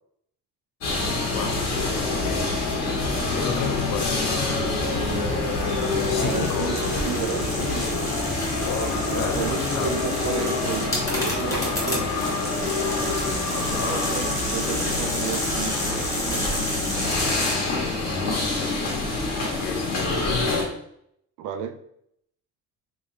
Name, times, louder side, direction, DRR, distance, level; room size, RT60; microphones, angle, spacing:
sound 1, 0.8-20.6, left 3 dB, 60° left, 1.1 m, -26 dB
voice 1, 1.3-2.5 3.3-4.7 6.1-6.8 8.6-10.0 13.8-14.1 18.0-18.5 19.5-20.6, left 7 dB, 80° left, 6 dB, 0.6 m, -32 dB
sound 2, 5.5-17.5, equal, 10° left, 1.3 m, -31 dB
voice 2, 6.2-8.1 9.1-12.1 13.7-16.5 21.4-21.8, right 8 dB, 85° right, 10 dB, 0.5 m, -33 dB
3.2 x 3.1 x 2.7 m, 0.73 s
cardioid pair, 90°, 30 cm